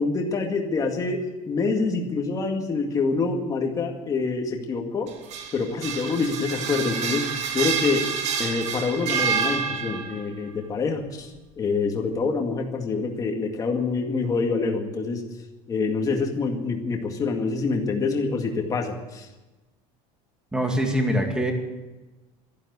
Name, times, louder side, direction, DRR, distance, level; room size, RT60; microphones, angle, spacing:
voice 1, 0.0-5.1 5.5-7.3 7.5-8.1 8.4-11.3 11.6-15.3 15.7-19.3, left 4 dB, 25° left, 2 dB, 2.1 m, -26 dB
sound 1, 5.1-10.3, right 6 dB, 50° right, 1.7 m, -28 dB
voice 2, 20.5-21.5, equal, 5° right, 3 dB, 2.3 m, -23 dB
12.5 x 12.0 x 9.5 m, 1.1 s
cardioid pair, 165°, 15 cm